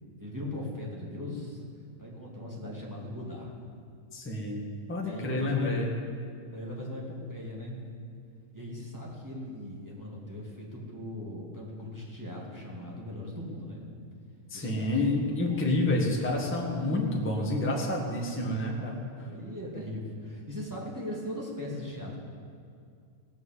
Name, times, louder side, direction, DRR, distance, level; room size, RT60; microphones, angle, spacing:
voice 1, 0.2-1.6 2.0-3.5 5.0-5.8 6.5-7.8 8.5-13.9 14.5-16.3 19.0-22.2, left 1 dB, 5° right, -4 dB, 1.7 m, -39 dB
voice 2, 4.1-4.6 4.9-5.9 14.5-19.0, left 2 dB, 10° left, -2 dB, 0.6 m, -29 dB
17.5 x 7.9 x 7.7 m, 2.3 s
omnidirectional pair, 3.9 m